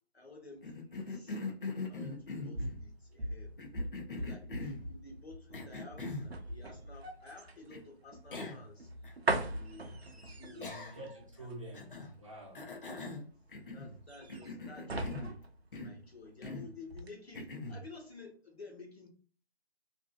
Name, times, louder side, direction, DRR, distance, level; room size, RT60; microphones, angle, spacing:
voice 1, 0.1-1.4 1.9-3.6 4.2-8.9 9.5-10.7 11.3-11.5 13.7-15.4 15.8-19.1, left 3 dB, 75° left, 1.2 m, -52 dB
Cough, 0.6-2.8 3.6-4.9 5.5-6.3 7.7-7.8 8.3-8.7 9.0-9.1 10.6-11.2 11.7-12.1 12.5-14.0 14.3-15.4 15.7-16.0 16.4-16.7 17.3-17.8, left 3 dB, 55° left, 0.7 m, -42 dB
sound 1, 2.2-16.5 16.9-17.1, right 2 dB, 70° right, 0.6 m, -41 dB
voice 2, 10.5-12.7, right 1 dB, 30° right, 0.7 m, -48 dB
2.6 x 2.6 x 2.3 m
figure-of-eight pair, 150°, 32 cm